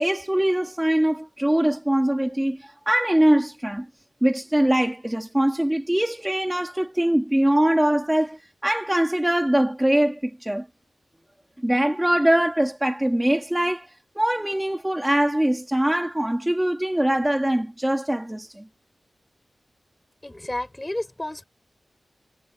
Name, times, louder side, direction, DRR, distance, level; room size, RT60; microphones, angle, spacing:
voice 1, 0.0-3.9 4.2-10.7 11.6-18.6, right 1 dB, 10° right, 3.9 m, -22 dB
voice 2, 20.2-21.4, left 1 dB, 15° left, 7.8 m, -31 dB
wide cardioid pair, 115°, 0 cm